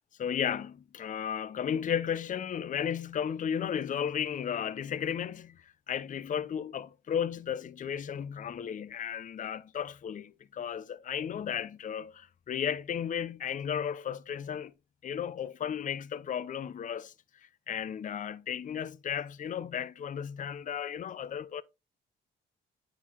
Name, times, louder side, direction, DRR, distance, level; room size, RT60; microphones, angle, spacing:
voice 1, 0.2-14.7 15.0-17.1 17.4-21.6, left 8 dB, 40° left, 0.6 m, -34 dB
9.3 x 4.1 x 4.5 m
cardioid pair, 90°, 20 cm